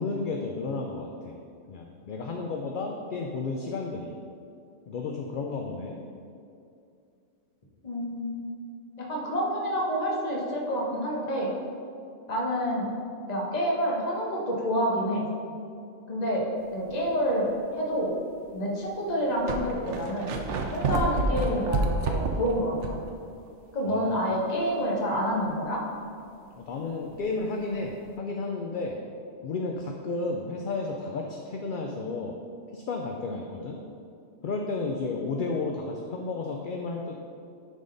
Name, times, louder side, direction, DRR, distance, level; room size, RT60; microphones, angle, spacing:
voice 1, 0.0-1.4 1.7-4.1 4.9-6.0 23.9-24.3 26.5-29.0 29.4-32.3 32.7-33.8 34.4-37.1, left 3 dB, 55° left, 1 dB, 0.6 m, -32 dB
voice 2, 7.8-8.4 9.0-11.5 12.3-12.9 13.3-15.2 16.1-16.5 16.7-18.1 18.5-23.0 23.7-25.8, equal, 35° left, -3 dB, 1.2 m, -28 dB
sound 1, 16.9-17.2 17.9-18.0 18.9-19.0 19.1-23.1 23.5-23.6 27.1-27.2, right 3 dB, 80° right, 1.0 m, -29 dB
11.0 x 3.7 x 3.9 m, 2.5 s
omnidirectional pair, 1.2 m